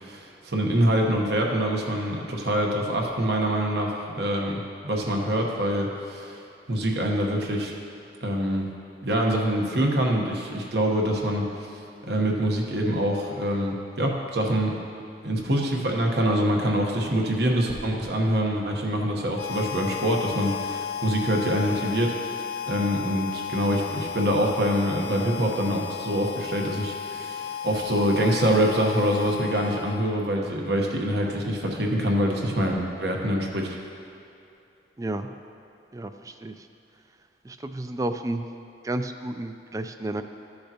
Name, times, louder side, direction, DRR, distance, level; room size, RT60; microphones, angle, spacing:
voice 1, 0.0-6.4 6.7-7.7 8.2-8.7 9.0-11.8 12.1-14.7 15.2-33.8, equal, 65° right, 0 dB, 1.1 m, -25 dB
Harmonica, 19.3-30.4, left 8 dB, 60° left, 0.3 m, -34 dB
voice 2, 35.0-35.3 35.9-36.5 37.4-38.4 38.8-40.2, right 1 dB, 20° right, 8 dB, 0.3 m, -31 dB
14.0 x 6.6 x 2.9 m, 2.7 s
head